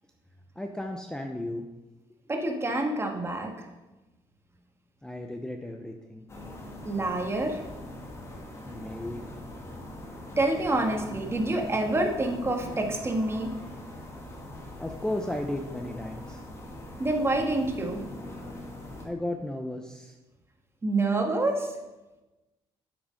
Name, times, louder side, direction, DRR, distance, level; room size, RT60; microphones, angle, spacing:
voice 1, 0.6-1.6 5.0-6.3 8.7-9.2 14.8-16.4 18.6-18.8 19.0-20.1, left 1 dB, 5° left, 3 dB, 0.7 m, -34 dB
voice 2, 2.3-3.5 6.8-7.6 10.4-13.5 17.0-18.0 20.8-21.7, right 2 dB, 25° right, 3 dB, 1.7 m, -27 dB
sound 1, 6.3-19.1, left 1 dB, 25° left, 1.8 m, -42 dB
7.9 x 6.2 x 5.3 m, 1.1 s
cardioid pair, 85°, 11 cm